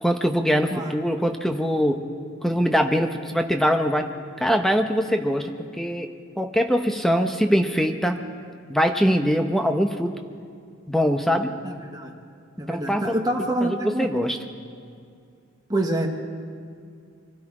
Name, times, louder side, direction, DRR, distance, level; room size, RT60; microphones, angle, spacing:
voice 1, 0.0-2.0 2.4-4.1 4.4-6.1 6.4-8.2 8.7-10.1 10.9-11.5 12.6-13.1 13.6-14.4, equal, ahead, 5 dB, 0.8 m, -22 dB
voice 2, 11.6-12.1 12.6-14.1 15.7-16.1, right 1 dB, 20° right, 1 dB, 1.2 m, -26 dB
24.0 x 12.5 x 4.9 m, 2.3 s
head